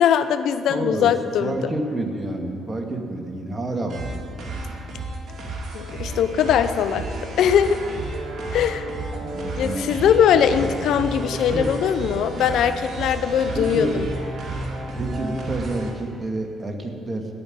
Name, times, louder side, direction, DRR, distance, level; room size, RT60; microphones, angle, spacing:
voice 1, 0.0-1.6 5.7-7.8 8.5-8.9 9.6-14.1, left 8 dB, 70° left, 11 dB, 0.7 m, -21 dB
voice 2, 0.7-1.1 1.4-4.8 9.2-10.7 11.3-11.7 13.5-13.9 15.0-17.3, right 1 dB, 30° right, 2 dB, 2.3 m, -29 dB
sound 1, 3.9-15.9, right 2 dB, 55° right, 2.6 m, -32 dB
17.0 x 5.8 x 9.6 m, 2.5 s
supercardioid pair, 60°, 0 cm